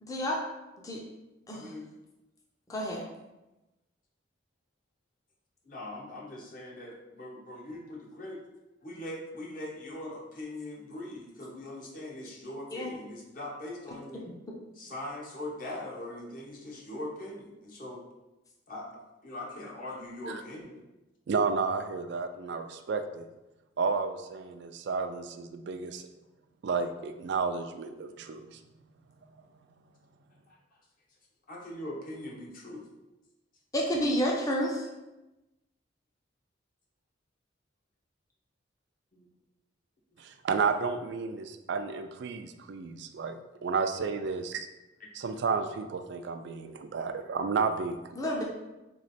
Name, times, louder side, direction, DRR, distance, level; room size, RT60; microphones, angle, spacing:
voice 1, 0.1-0.4 0.8-1.0 1.5-1.7 2.7-3.0 12.7-12.9 33.7-34.9 48.1-48.4, equal, 15° left, -1 dB, 0.6 m, -29 dB
voice 2, 1.5-1.9 5.6-8.4 8.8-14.2 14.7-18.0 18.7-18.9 19.2-20.8 30.5-30.6 31.5-32.9 39.1-39.3 45.0-45.1, left 1 dB, 45° left, -2 dB, 0.9 m, -41 dB
voice 3, 21.3-23.3 23.8-26.0 26.6-28.6 40.2-44.7 45.1-48.4, right 5 dB, 60° right, 7 dB, 0.3 m, -32 dB
3.6 x 3.1 x 4.1 m, 1.0 s
head